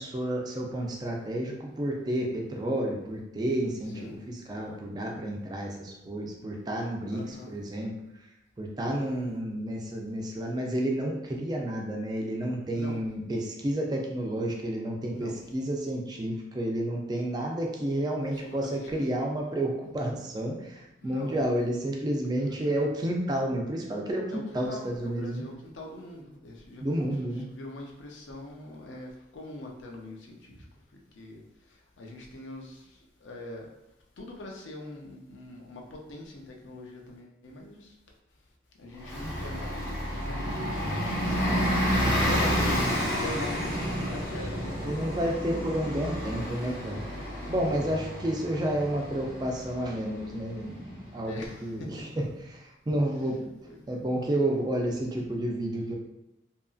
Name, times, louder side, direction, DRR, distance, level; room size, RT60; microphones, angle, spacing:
voice 1, 0.0-7.9 8.2-8.3 8.6-25.4 26.8-27.5 39.2-39.3 44.0-44.1 44.8-47.0 47.4-52.2 52.5-53.4 53.9-55.9, right 1 dB, 20° right, 0 dB, 0.3 m, -31 dB
voice 2, 7.1-7.5 8.8-9.2 12.7-13.0 15.1-15.4 18.2-19.1 21.0-21.4 22.4-22.8 24.3-27.1 27.5-30.6 31.2-31.4 32.0-32.8 33.2-33.7 34.2-37.9 38.8-41.7 42.2-42.8 43.2-45.3 47.8-48.0 51.3-52.0 53.6-53.8, left 1 dB, 85° left, 1 dB, 0.5 m, -43 dB
Bus, 39.0-51.3, equal, 15° left, 0.8 m, -30 dB
2.8 x 2.5 x 2.3 m, 0.89 s
head